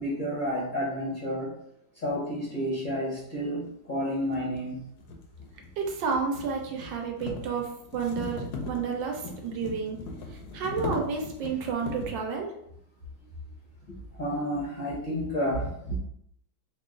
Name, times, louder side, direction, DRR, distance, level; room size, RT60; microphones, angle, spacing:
voice 1, 0.0-1.5 2.0-4.8 14.2-16.0, equal, 45° left, -6 dB, 0.6 m, -30 dB
sound 1, 3.4-3.5 4.2-12.3, left 3 dB, 70° left, 1.0 m, -39 dB
voice 2, 5.8-10.0 10.3-12.5, right 5 dB, 75° right, 1 dB, 1.3 m, -31 dB
3.5 x 2.3 x 3.7 m, 0.74 s
omnidirectional pair, 2.2 m